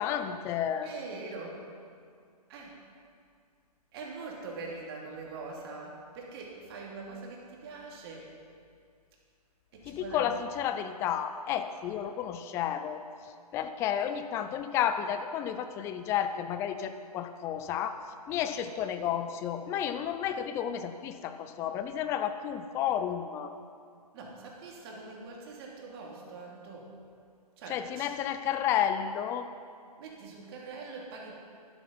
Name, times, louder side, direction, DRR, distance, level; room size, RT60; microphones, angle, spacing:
voice 1, 0.0-0.9 9.8-13.0 13.5-18.0 18.3-23.5 27.7-29.4, left 9 dB, 15° left, 10 dB, 0.4 m, -31 dB
voice 2, 0.8-1.6 2.5-2.8 3.9-8.3 9.7-10.3 24.1-26.9 27.6-28.1 30.0-31.3, right 3 dB, 40° right, -2 dB, 2.9 m, -43 dB
12.5 x 11.5 x 5.3 m, 2.2 s
hypercardioid pair, 135°, 20 cm